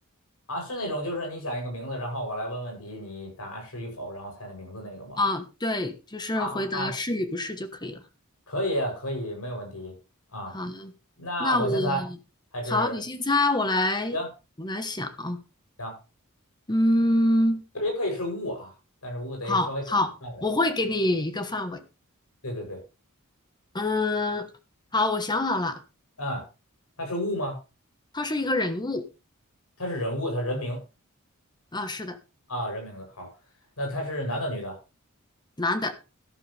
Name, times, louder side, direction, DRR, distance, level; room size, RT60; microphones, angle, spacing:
voice 1, 0.5-5.2 6.3-6.9 8.5-9.9 10.3-10.6 11.2-12.0 12.5-13.0 14.1-14.3 15.8-16.0 17.8-18.7 19.0-19.8 20.2-20.5 22.4-22.8 26.2-26.4 27.0-27.6 29.8-30.8 32.5-33.3 33.8-34.8, equal, 75° left, 2 dB, 7.7 m, -31 dB
voice 2, 5.2-8.0 10.5-10.9 11.4-12.0 12.7-14.2 14.6-15.4 16.7-17.7 19.4-20.1 20.4-21.8 23.7-24.5 24.9-25.8 28.1-29.1 31.7-32.2 35.6-35.9, left 2 dB, 20° left, 9 dB, 1.2 m, -26 dB
13.0 x 12.0 x 3.4 m, 0.30 s
head